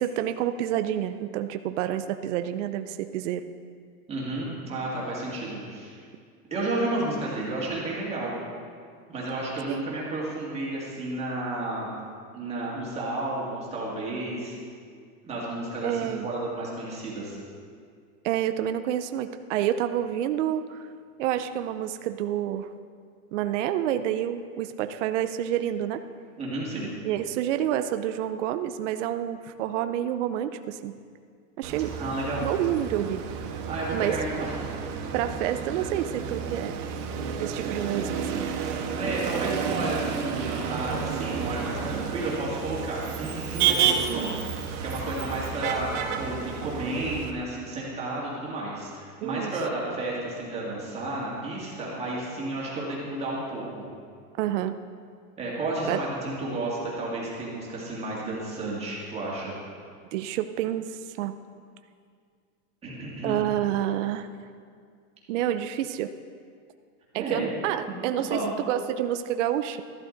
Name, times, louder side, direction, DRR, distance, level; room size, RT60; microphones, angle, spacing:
voice 1, 0.0-3.5 9.7-9.8 15.8-16.3 18.2-20.8 21.2-22.7 23.3-26.0 27.0-30.9 31.6-31.9 32.4-33.2 33.9-34.2 35.1-36.8 37.4-38.5 44.1-44.5 49.2-49.5 54.4-54.8 55.8-56.0 60.1-61.3 63.2-64.3 65.3-66.1 67.1-68.4 68.7-69.8, right 11 dB, 55° right, 9 dB, 0.5 m, -28 dB
voice 2, 4.1-6.0 6.5-8.4 9.1-11.9 12.3-14.5 15.2-17.4 26.4-26.9 31.9-32.5 33.7-34.6 38.9-44.3 44.8-53.9 55.4-59.5 62.8-63.4 67.2-67.5 68.3-68.5, right 2 dB, 15° right, -5 dB, 2.0 m, -32 dB
Motor vehicle (road), 31.6-47.3, right 7 dB, 75° right, 1.5 m, -31 dB
13.5 x 12.5 x 3.9 m, 2.1 s
supercardioid pair, 170°, 46 cm